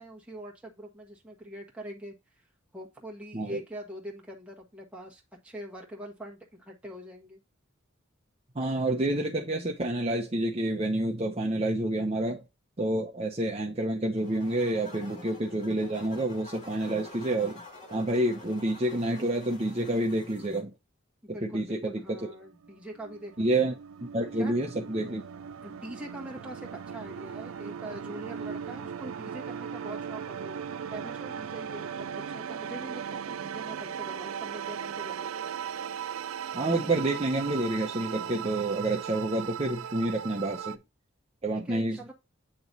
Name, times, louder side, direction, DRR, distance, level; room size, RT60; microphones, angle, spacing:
voice 1, 0.0-2.1 2.7-7.4 21.2-23.5 24.4-24.5 25.6-30.6 30.9-35.5 41.5-42.1, right 1 dB, 5° right, 1.4 m, -43 dB
voice 2, 8.5-12.4 12.8-17.6 17.9-20.7 21.4-22.3 23.4-23.7 24.0-25.2 36.5-40.8 41.4-42.1, right 1 dB, 30° right, 0.8 m, -28 dB
sound 1, 14.1-20.6, left 2 dB, 40° left, 1.8 m, -48 dB
sound 2, 22.4-40.8, right 8 dB, 90° right, 0.4 m, -38 dB
8.7 x 3.1 x 4.0 m
head